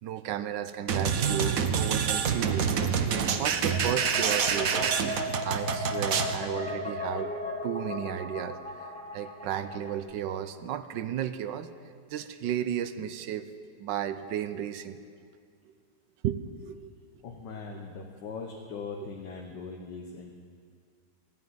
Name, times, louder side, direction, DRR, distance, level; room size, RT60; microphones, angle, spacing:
voice 1, 0.0-2.7 3.4-5.1 5.4-8.6 9.1-11.7 12.1-13.5 13.8-15.1 16.2-16.9 19.0-19.1, right 10 dB, 85° right, 12 dB, 1.4 m, -33 dB
sound 1, 0.9-6.4, right 6 dB, 60° right, 1.2 m, -27 dB
sound 2, 3.6-10.0, left 2 dB, 5° left, 1.5 m, -36 dB
voice 2, 17.2-20.3, left 4 dB, 75° left, 1 dB, 1.8 m, -40 dB
14.5 x 9.3 x 9.5 m, 2.1 s
omnidirectional pair, 1.9 m